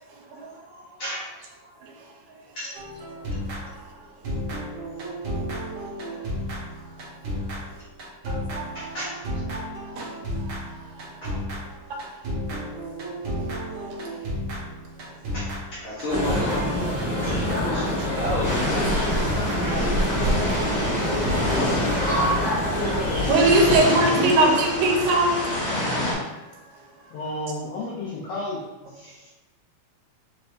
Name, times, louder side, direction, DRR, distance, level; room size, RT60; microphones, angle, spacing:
voice 1, 0.1-0.9 1.8-2.0 3.6-4.0 6.1-6.2 9.5-9.7 9.9-10.1 10.4-11.0 11.9-12.2 13.7-14.0 23.3-25.4, right 2 dB, 80° right, 0 dB, 2.0 m, -23 dB
sound 1, 2.8-4.0 4.2-22.0, equal, 60° right, 1.4 m, -33 dB
voice 2, 8.7-9.1 11.2-11.3 15.3-16.6 17.1-18.5 19.7-20.4 20.8-21.0 24.1-24.3 29.0-29.3, left 1 dB, 65° left, -10 dB, 1.2 m, -33 dB
sound 2, 16.1-23.8, equal, 40° right, 1.1 m, -25 dB
sound 3, 18.4-26.1, left 1 dB, 50° left, 2.2 m, -28 dB
voice 3, 27.1-28.7, left 2 dB, 90° left, -4 dB, 1.4 m, -31 dB
4.8 x 3.3 x 2.5 m, 1.0 s
omnidirectional pair, 3.5 m